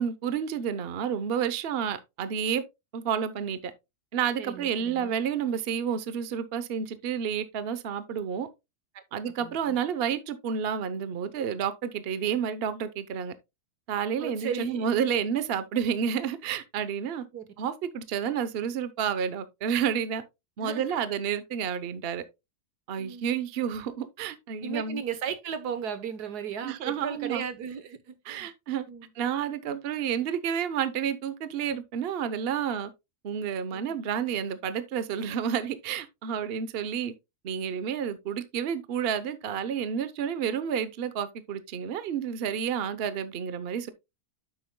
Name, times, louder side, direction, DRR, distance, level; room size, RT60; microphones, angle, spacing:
voice 1, 0.0-2.6 2.9-3.7 4.1-8.5 9.1-13.3 13.9-17.2 17.6-20.2 20.6-22.2 22.9-25.0 26.6-27.4 28.3-28.8 29.2-32.9 33.2-37.1 37.4-43.9, right 8 dB, 45° right, 0.9 m, -30 dB
voice 2, 4.4-5.2 8.9-9.0 9.4-9.8 14.2-14.9 17.3-17.5 20.6-21.0 23.0-23.2 24.6-28.5 28.9-29.1 33.7-33.9 35.1-35.4, right 7 dB, 85° right, 1.6 m, -36 dB
9.7 x 7.8 x 2.2 m
omnidirectional pair, 1.6 m